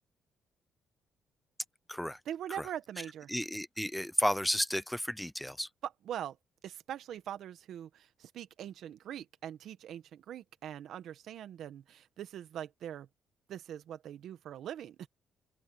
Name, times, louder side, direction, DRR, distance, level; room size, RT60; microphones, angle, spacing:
voice 1, 2.2-3.3 5.8-6.3 6.6-13.1 13.5-15.1, right 10 dB, 75° right, 1.7 m, -42 dB
voice 2, 3.3-5.7, equal, 5° left, 0.5 m, -32 dB
open air
cardioid pair, 90°, 0 cm